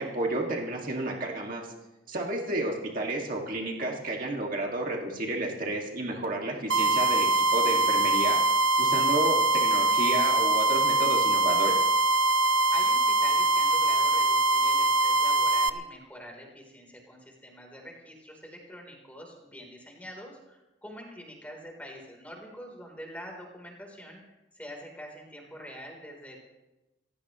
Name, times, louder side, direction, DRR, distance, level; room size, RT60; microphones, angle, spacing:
voice 1, 0.0-1.7 2.1-8.4 8.8-11.8, right 1 dB, 45° right, -1 dB, 2.1 m, -31 dB
sound 1, 6.7-15.7, right 2 dB, 75° right, 0.7 m, -23 dB
voice 2, 12.5-24.2 24.5-26.5, equal, 5° left, 1 dB, 3.6 m, -45 dB
28.0 x 16.0 x 3.1 m, 1.0 s
head